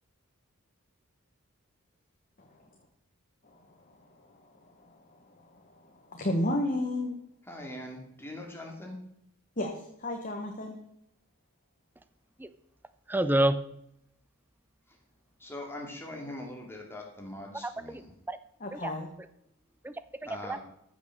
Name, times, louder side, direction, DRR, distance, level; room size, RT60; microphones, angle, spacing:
voice 1, 3.4-7.2 9.6-10.8 18.6-19.1, left 1 dB, 40° left, 3 dB, 1.3 m, -34 dB
voice 2, 7.5-9.0 14.9-15.0 15.4-18.1 20.3-20.6, left 1 dB, 10° left, 1 dB, 2.4 m, -41 dB
voice 3, 13.1-13.7 17.6-18.0 18.3-18.4 18.7-18.9 19.8-20.6, right 1 dB, 10° right, 13 dB, 0.5 m, -29 dB
14.0 x 6.2 x 6.7 m, 0.76 s
head